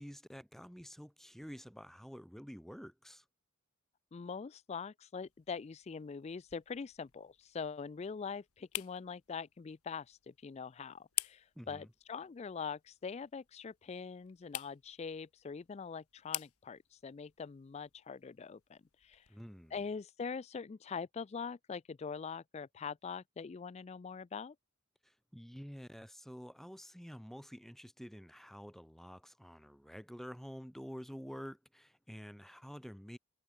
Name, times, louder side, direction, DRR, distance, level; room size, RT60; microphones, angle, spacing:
voice 1, 0.0-3.2 11.5-11.9 19.3-19.8 25.0-33.2, equal, ahead, 1.5 m, -49 dB
voice 2, 4.1-19.4 19.7-24.5, left 5 dB, 30° left, 0.3 m, -43 dB
sound 1, 5.2-20.0, left 16 dB, 90° left, 1.6 m, -49 dB
head